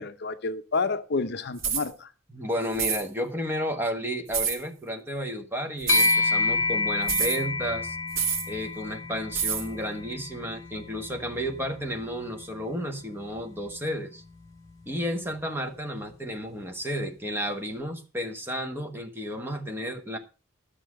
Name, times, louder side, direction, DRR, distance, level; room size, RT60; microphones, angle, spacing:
voice 1, 0.0-2.1, left 4 dB, 55° left, 0.7 m, -29 dB
sound 1, 1.6-1.9 2.7-3.0 4.3-4.6 5.8-6.2 7.1-7.4 8.1-8.5 9.3-9.7, right 7 dB, 75° right, 1.8 m, -27 dB
voice 2, 2.3-8.0 8.5-14.2 14.9-20.2, equal, 10° right, 1.4 m, -32 dB
sound 2, 5.9-15.5, left 3 dB, 15° left, 2.4 m, -31 dB
12.0 x 6.7 x 6.2 m
head